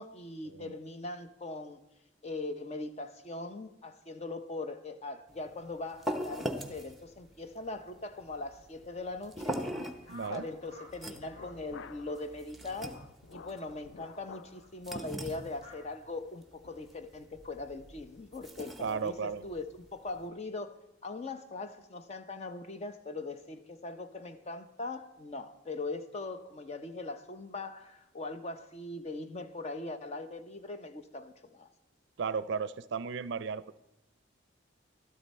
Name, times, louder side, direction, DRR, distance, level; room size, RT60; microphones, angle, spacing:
voice 1, 0.0-1.8 2.2-9.7 10.3-12.9 13.3-19.6 19.9-31.7, left 2 dB, 35° left, 0.7 m, -41 dB
sound 1, 5.3-20.3, equal, ahead, 0.9 m, -42 dB
sound 2, 10.0-10.9 11.2-11.5 11.9-12.2 12.6-12.9 13.5-13.7 14.4-14.7 15.5-15.8, left 1 dB, 90° left, 5.5 m, -52 dB
voice 2, 10.1-10.5 18.8-19.4 32.2-33.8, right 5 dB, 65° right, 0.4 m, -35 dB
sound 3, 11.1-12.2 12.6-14.6 14.9-15.1 15.6-15.8 16.2-16.3 16.6-16.8, left 5 dB, 70° left, 0.4 m, -51 dB
12.5 x 12.5 x 4.2 m
head